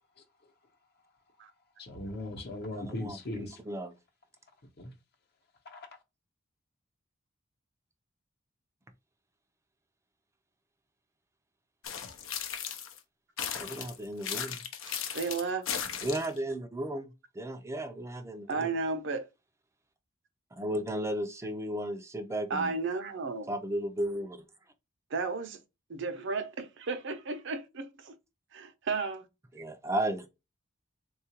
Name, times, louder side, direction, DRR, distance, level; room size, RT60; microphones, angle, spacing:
voice 1, 0.2-0.5 1.8-3.6 4.8-4.9 5.6-5.9, left 1 dB, 55° left, 0.8 m, -39 dB
voice 2, 2.7-3.9 13.5-14.6 16.0-17.1 17.3-18.7 20.6-22.7 23.5-24.4 29.5-30.3, right 1 dB, 15° right, 0.4 m, -34 dB
sound 1, 11.8-13.0 13.4-16.4, left 8 dB, 80° left, 0.6 m, -36 dB
voice 3, 15.1-15.6 18.5-19.3 22.5-23.5 25.1-25.6 25.9-28.1 28.5-29.3, right 4 dB, 65° right, 0.6 m, -33 dB
3.6 x 2.4 x 2.8 m
head